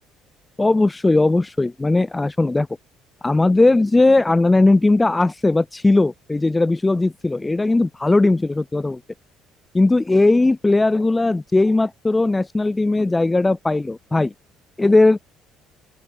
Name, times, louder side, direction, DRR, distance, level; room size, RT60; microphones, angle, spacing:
voice 1, 0.6-2.7 3.2-9.0 9.7-14.3 14.8-15.2, left 2 dB, 10° left, 5.8 m, -18 dB
open air
cardioid pair, 125°, 0 cm